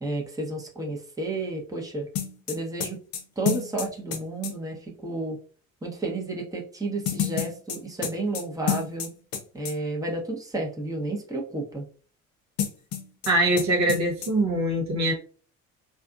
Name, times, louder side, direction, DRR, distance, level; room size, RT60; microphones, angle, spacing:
voice 1, 0.0-2.1 2.5-3.0 3.4-5.4 5.8-9.1 9.5-11.8, right 2 dB, 10° right, 1.0 m, -31 dB
sound 1, 2.2-4.5 7.1-9.4 9.7-9.8 12.6-13.3 13.6-13.7 13.9-14.3, left 9 dB, 55° left, 0.8 m, -29 dB
voice 2, 13.3-15.1, right 1 dB, 40° right, 1.0 m, -23 dB
3.3 x 2.6 x 2.4 m
hypercardioid pair, 55°, 41 cm